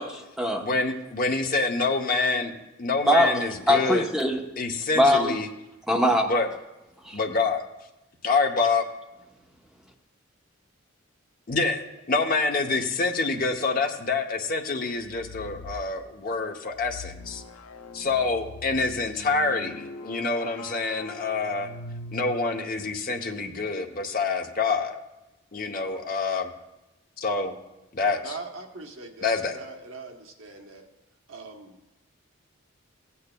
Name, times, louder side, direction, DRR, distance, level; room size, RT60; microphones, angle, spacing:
voice 1, 0.0-0.7 3.1-4.4 5.0-5.3 5.9-6.3 7.0-7.2, left 1 dB, ahead, 0 dB, 0.8 m, -22 dB
voice 2, 0.6-2.5 2.8-4.1 4.6-5.5 6.3-6.5 7.1-7.6 8.2-8.8 11.5-17.4 17.9-21.7 22.1-24.9 25.5-26.5 27.2-27.5 27.9-28.4 29.2-29.6, left 3 dB, 40° left, 3 dB, 0.7 m, -26 dB
sound 1, 14.9-15.9 16.7-22.7, left 2 dB, 85° left, 0.6 m, -42 dB
voice 3, 28.2-30.8 31.3-31.8, right 3 dB, 70° right, 3 dB, 1.0 m, -41 dB
16.0 x 8.4 x 2.2 m, 0.98 s
head